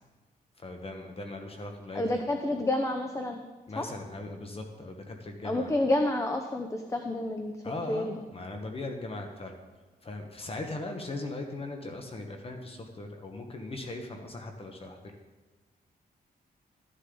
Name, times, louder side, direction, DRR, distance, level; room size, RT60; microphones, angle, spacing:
voice 1, 0.6-2.2 3.7-5.7 7.6-9.6 10.0-15.2, left 2 dB, 35° left, 4 dB, 1.2 m, -39 dB
voice 2, 1.9-3.4 3.8-3.9 5.4-7.6 7.9-8.1, left 1 dB, 15° left, 5 dB, 0.8 m, -29 dB
13.5 x 10.0 x 3.9 m, 1.2 s
cardioid pair, 115°, 17 cm